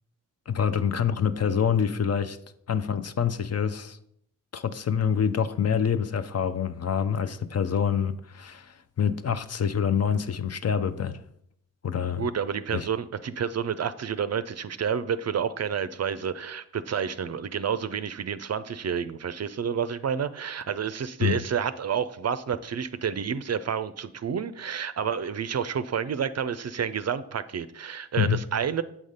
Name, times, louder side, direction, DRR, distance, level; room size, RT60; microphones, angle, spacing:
voice 1, 0.5-2.4 2.7-4.0 4.5-11.2 11.8-12.3 12.7-12.9 21.2-21.4 28.2-28.4, left 7 dB, 40° left, 0.6 m, -26 dB
voice 2, 12.2-28.8, right 7 dB, 40° right, 0.5 m, -29 dB
7.3 x 4.0 x 5.0 m
supercardioid pair, 40°, 40 cm